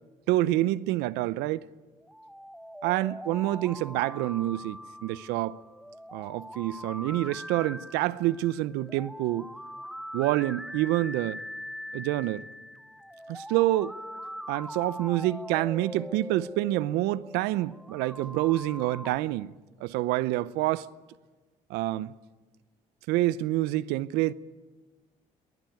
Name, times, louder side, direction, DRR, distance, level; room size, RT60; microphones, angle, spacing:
voice 1, 0.3-1.6 2.8-5.6 6.1-9.5 10.1-11.4 11.9-12.5 13.3-13.9 14.5-19.5 19.8-20.9 21.7-22.1 23.1-24.3, right 16 dB, 80° right, 0.7 m, -27 dB
sound 1, 2.0-19.2, equal, ahead, 0.8 m, -42 dB
22.0 x 20.0 x 9.2 m
supercardioid pair, 65°, 17 cm